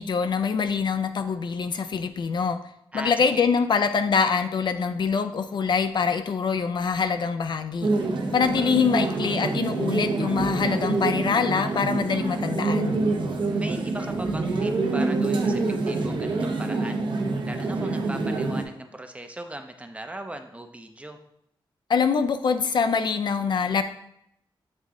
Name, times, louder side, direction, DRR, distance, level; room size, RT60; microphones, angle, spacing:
voice 1, 0.0-2.6 2.9-7.9 8.3-13.0 21.9-23.8, left 5 dB, 60° left, 9 dB, 0.4 m, -24 dB
voice 2, 2.9-3.5 13.6-17.0 17.4-21.2, right 1 dB, 15° right, 6 dB, 0.6 m, -38 dB
sound 1, 7.8-18.6, right 3 dB, 65° right, 0.9 m, -26 dB
7.3 x 3.7 x 3.6 m, 0.75 s
wide cardioid pair, 100°, 9 cm